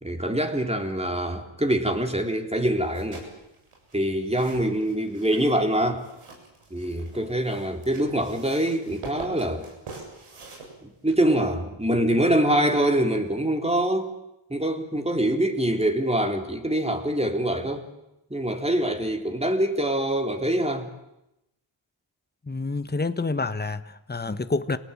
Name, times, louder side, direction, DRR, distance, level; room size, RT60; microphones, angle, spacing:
voice 1, 0.0-3.3 3.9-6.0 6.7-9.7 10.8-14.1 14.5-17.9 18.3-20.9, right 1 dB, 10° right, 3.7 m, -24 dB
sound 1, 2.8-11.4, right 3 dB, 90° right, 7.4 m, -44 dB
voice 2, 22.5-24.8, left 3 dB, 20° left, 1.3 m, -28 dB
27.5 x 19.0 x 9.0 m
cardioid pair, 75°, 49 cm